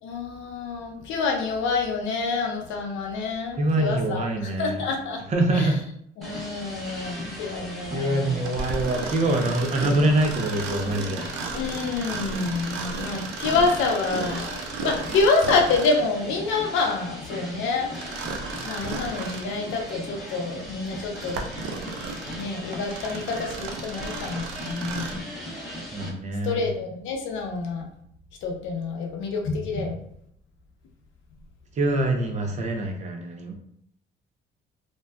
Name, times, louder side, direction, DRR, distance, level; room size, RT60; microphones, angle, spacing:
voice 1, 0.0-5.2 5.5-5.7 6.2-8.5 11.5-14.5 14.8-18.3 18.6-21.4 22.3-25.2 26.4-27.8 28.4-30.0, left 4 dB, 85° left, 2 dB, 0.6 m, -27 dB
voice 2, 3.6-4.8 5.3-5.8 7.1-7.4 7.8-11.2 25.9-26.7 31.7-33.5, right 1 dB, 35° right, 4 dB, 0.5 m, -25 dB
sound 1, 6.2-26.1, left 1 dB, ahead, 0.9 m, -39 dB
Mechanisms, 8.4-16.1 17.9-19.6 20.1-20.2 20.9-25.3, right 4 dB, 85° right, 0.4 m, -34 dB
2.6 x 2.2 x 2.3 m, 0.70 s
cardioid pair, 115°, 19 cm